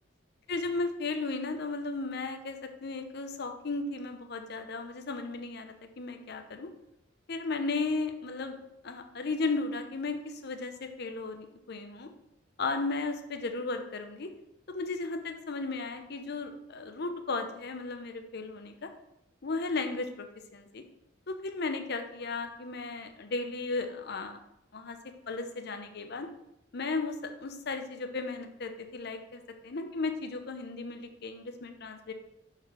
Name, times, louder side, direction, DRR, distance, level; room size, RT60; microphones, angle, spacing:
voice 1, 0.5-6.7 7.3-8.6 8.8-12.1 12.6-14.3 14.7-18.9 19.4-20.8 21.3-24.4 24.7-25.0 25.3-26.3 26.7-32.1, left 3 dB, 55° left, 6 dB, 0.7 m, -35 dB
6.5 x 4.6 x 4.9 m, 0.82 s
head